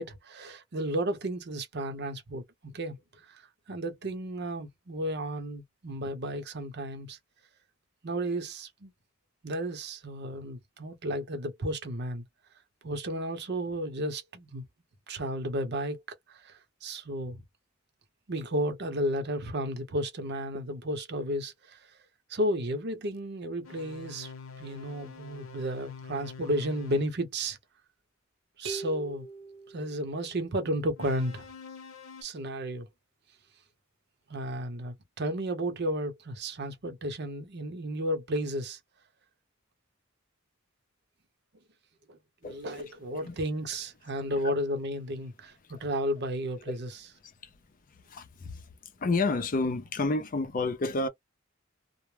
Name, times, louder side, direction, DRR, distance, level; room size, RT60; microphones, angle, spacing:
voice 1, 0.0-3.0 3.3-3.4 3.7-7.2 8.0-8.9 9.4-12.2 12.8-14.6 15.1-16.0 16.3-16.5 16.8-17.4 18.3-21.8 22.3-24.3 24.6-27.6 28.6-29.3 29.7-31.4 32.2-32.9 34.3-38.8 42.1-47.0, equal, 55° right, 0.7 m, -33 dB
sound 1, 23.6-27.1 31.0-32.2, left 5 dB, 85° left, 0.7 m, -46 dB
sound 2, 28.6-30.5, right 3 dB, 80° right, 0.9 m, -42 dB
voice 2, 48.1-48.6 49.0-51.1, left 3 dB, 40° left, 0.5 m, -30 dB
2.1 x 2.0 x 3.1 m
head